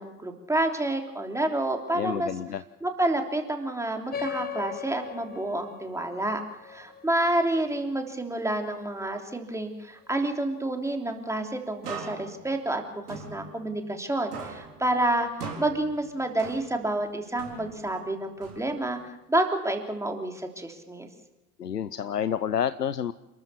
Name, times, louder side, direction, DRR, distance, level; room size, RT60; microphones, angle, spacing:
voice 1, 0.0-2.3 2.8-21.1, right 1 dB, 5° right, 4 dB, 3.3 m, -29 dB
voice 2, 1.9-2.6 21.6-23.1, left 8 dB, 85° left, 15 dB, 0.6 m, -29 dB
sound 1, 4.1-9.1, left 9 dB, 20° left, 1.2 m, -40 dB
sound 2, 11.8-14.1 14.3-17.0 17.4-19.0, right 4 dB, 75° right, 4.2 m, -41 dB
28.5 x 13.5 x 7.0 m, 0.97 s
figure-of-eight pair, 70°, 47 cm